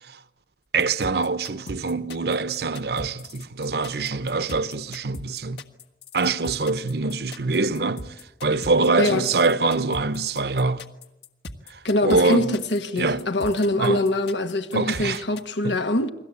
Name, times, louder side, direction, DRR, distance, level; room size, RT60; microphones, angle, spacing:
voice 1, 0.7-5.6 6.1-8.1 8.4-10.8 11.7-12.6 13.0-13.3 13.8-14.0 14.7-15.2 15.6-15.8, right 3 dB, 60° right, 0.9 m, -24 dB
sound 1, 0.8-15.4, left 2 dB, 65° left, 1.5 m, -39 dB
voice 2, 11.8-16.1, left 1 dB, 85° left, 1.5 m, -23 dB
29.5 x 22.0 x 8.4 m
head